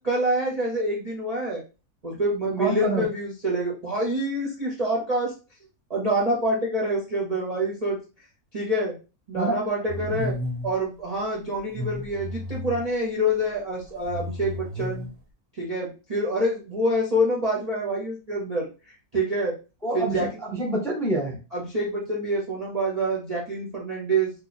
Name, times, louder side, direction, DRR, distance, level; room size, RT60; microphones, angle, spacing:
voice 1, 0.0-1.6 2.0-5.3 5.9-8.0 8.5-8.9 9.3-10.3 10.6-15.1 15.6-18.7 19.1-19.6 19.9-20.3 21.5-24.3, right 1 dB, 35° right, -4 dB, 0.6 m, -26 dB
voice 2, 2.6-3.0 9.3-9.5 9.9-10.3 19.8-21.4, right 2 dB, ahead, 0 dB, 0.6 m, -27 dB
sound 1, 9.9-10.8 11.6-12.9 13.8-15.2, left 1 dB, 75° right, 1.2 m, -33 dB
2.9 x 2.3 x 4.0 m, 0.31 s
omnidirectional pair, 1.6 m